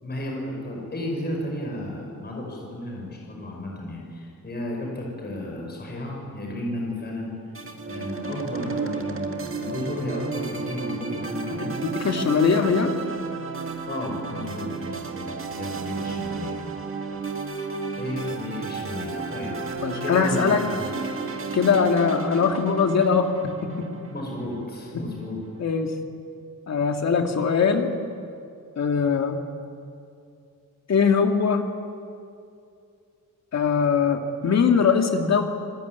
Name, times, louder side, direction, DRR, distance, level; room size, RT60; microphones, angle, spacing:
voice 1, 0.0-7.3 7.9-11.7 13.9-16.5 18.0-19.5 20.0-20.9 24.1-25.4, left 1 dB, 30° left, -1 dB, 5.7 m, -33 dB
sound 1, 7.5-24.9, right 4 dB, 40° right, 2.0 m, -32 dB
voice 2, 12.0-12.9 19.8-20.6 21.5-23.9 25.6-25.9 26.7-27.9 28.8-29.4 30.9-31.7 33.5-35.4, left 6 dB, 50° left, 4 dB, 2.4 m, -21 dB
28.0 x 21.5 x 9.5 m, 2.4 s
wide cardioid pair, 180°, 34 cm